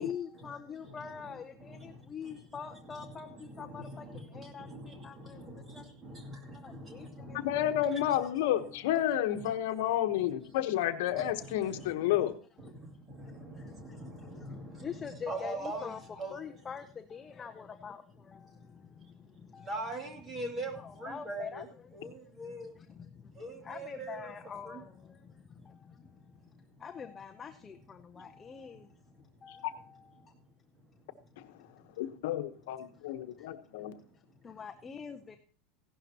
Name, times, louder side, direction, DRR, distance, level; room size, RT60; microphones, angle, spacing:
voice 1, 0.0-4.1 4.3-4.7 5.0-5.4 5.7-5.8 6.6-7.1 8.2-8.6 14.8-16.0 16.3-18.0 19.5-19.7 20.7-21.6 23.7-24.9 26.8-28.8 29.4-29.9 34.4-35.4, left 7 dB, 15° left, 5 dB, 0.7 m, -43 dB
voice 2, 0.8-2.4 2.7-8.2 9.3-9.5 10.1-10.2 10.4-10.6 11.1-12.2 12.6-16.6 19.6-21.7 21.9-22.8 23.3-24.3 24.6-24.8 28.1-28.3, right 2 dB, 20° right, 3 dB, 2.4 m, -43 dB
voice 3, 7.3-12.3 29.5-29.6 32.0-33.9, left 12 dB, 75° left, 8 dB, 1.1 m, -30 dB
16.0 x 11.5 x 2.9 m, 0.41 s
supercardioid pair, 160°, 0 cm